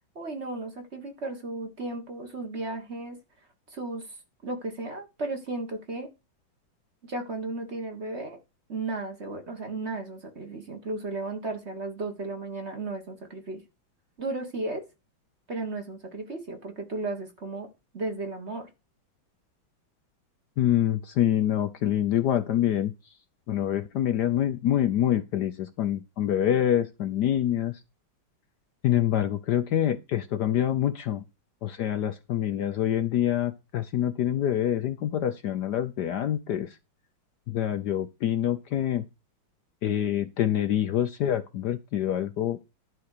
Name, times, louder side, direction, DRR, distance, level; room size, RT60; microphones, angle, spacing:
voice 1, 0.1-3.2 3.7-4.2 4.4-6.1 7.0-8.4 8.7-13.6 14.2-14.8 15.5-17.7 17.9-18.7, right 2 dB, 35° right, 1.7 m, -34 dB
voice 2, 20.6-22.9 23.5-27.8 28.8-31.2 31.6-36.7 37.5-39.1 39.8-42.6, left 11 dB, 65° left, 1.1 m, -26 dB
11.5 x 4.4 x 6.5 m
omnidirectional pair, 2.2 m